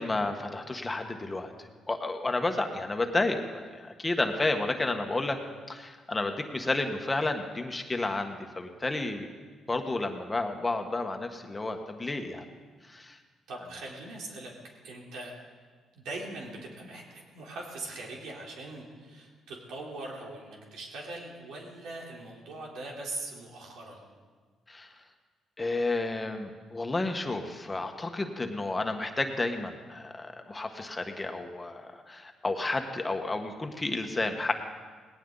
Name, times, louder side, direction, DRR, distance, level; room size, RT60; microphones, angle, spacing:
voice 1, 0.0-5.4 5.7-9.3 9.7-12.4 12.9-13.1 24.7-24.9 25.6-34.5, left 2 dB, 20° left, 5 dB, 1.5 m, -31 dB
voice 2, 13.5-14.5 14.8-15.3 15.9-24.0, right 2 dB, 85° right, -2 dB, 3.7 m, -41 dB
19.0 x 17.5 x 4.0 m, 1.5 s
cardioid pair, 90°, 0 cm